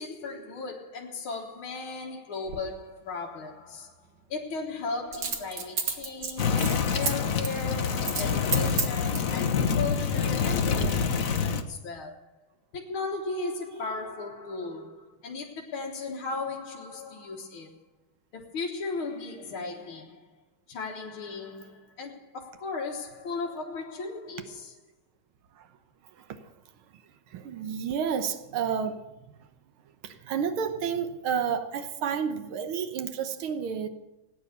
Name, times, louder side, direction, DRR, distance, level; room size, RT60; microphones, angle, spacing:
voice 1, 0.0-12.3 12.7-17.7 18.3-20.3 20.7-24.8, left 3 dB, 75° left, 2.3 m, -36 dB
Coin (dropping), 2.5-2.6 5.1-7.1 7.4-7.6 8.0-8.3 8.5-9.3 10.0-10.5 10.8-10.9, right 5 dB, 60° right, 2.2 m, -31 dB
sound 1, 6.4-11.6, left 6 dB, 50° left, 1.3 m, -26 dB
voice 2, 27.3-29.0 30.0-33.9, right 7 dB, 80° right, 1.9 m, -30 dB
18.5 x 9.5 x 6.7 m
omnidirectional pair, 2.3 m